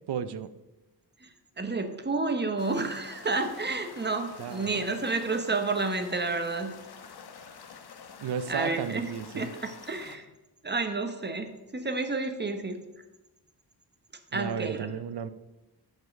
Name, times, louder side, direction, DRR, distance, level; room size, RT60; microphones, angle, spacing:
voice 1, 0.1-0.5 4.4-4.8 8.2-9.5 14.3-15.3, right 7 dB, 70° right, 13 dB, 0.7 m, -34 dB
voice 2, 1.6-6.7 8.5-9.1 9.4-10.3 10.6-12.8 14.3-14.9, right 3 dB, 25° right, 7 dB, 1.0 m, -30 dB
sound 1, 2.6-10.2, left 6 dB, 65° left, 1.1 m, -48 dB
14.0 x 5.4 x 5.3 m, 1.0 s
wide cardioid pair, 150°, 41 cm